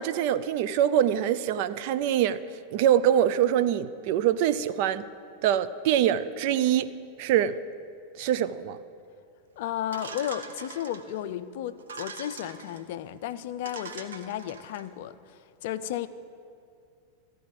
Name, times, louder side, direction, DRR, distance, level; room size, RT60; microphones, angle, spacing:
voice 1, 0.0-2.4 2.7-5.1 5.4-6.9 7.2-7.5 8.2-8.8, right 10 dB, 45° right, 0.4 m, -24 dB
voice 2, 9.6-16.1, left 11 dB, 50° left, 0.4 m, -34 dB
sound 1, 9.9-11.2 11.8-12.8 13.3-13.4 13.6-14.9, right 5 dB, 65° right, 0.8 m, -42 dB
13.5 x 4.9 x 8.8 m
figure-of-eight pair, 90°, 0 cm